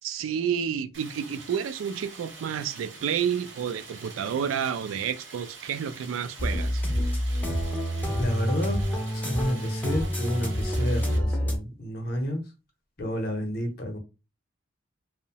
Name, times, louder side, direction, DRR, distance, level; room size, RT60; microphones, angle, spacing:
voice 1, 0.0-6.8, right 8 dB, 80° right, 0.3 m, -30 dB
Stream, 0.9-11.2, right 4 dB, 60° right, 0.8 m, -46 dB
sound 1, 6.4-11.6, equal, 10° left, 0.4 m, -27 dB
voice 2, 8.2-8.8 9.1-12.4 13.0-14.0, equal, 50° left, 0.6 m, -30 dB
2.7 x 2.0 x 2.7 m
head